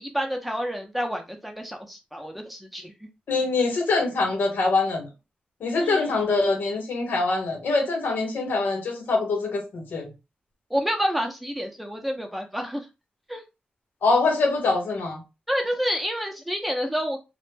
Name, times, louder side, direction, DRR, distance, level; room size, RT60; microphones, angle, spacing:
voice 1, 0.0-3.1 5.8-6.1 10.7-12.8 13.3-13.4 15.5-17.2, equal, ahead, 0.7 m, -29 dB
voice 2, 3.3-5.1 5.6-10.1 14.0-15.2, left 3 dB, 85° left, 0.8 m, -24 dB
2.1 x 2.1 x 3.2 m
cardioid pair, 65°, 3 cm